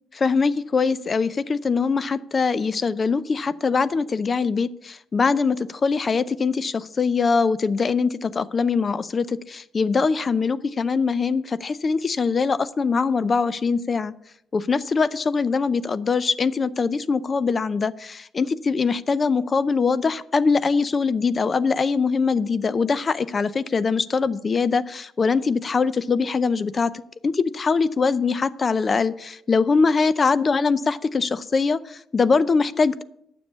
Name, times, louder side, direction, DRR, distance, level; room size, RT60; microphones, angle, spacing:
voice 1, 0.1-14.1 14.5-26.9 27.2-33.0, left 4 dB, 40° left, 17 dB, 0.5 m, -22 dB
9.6 x 7.1 x 6.9 m, 0.75 s
cardioid pair, 90°, 0 cm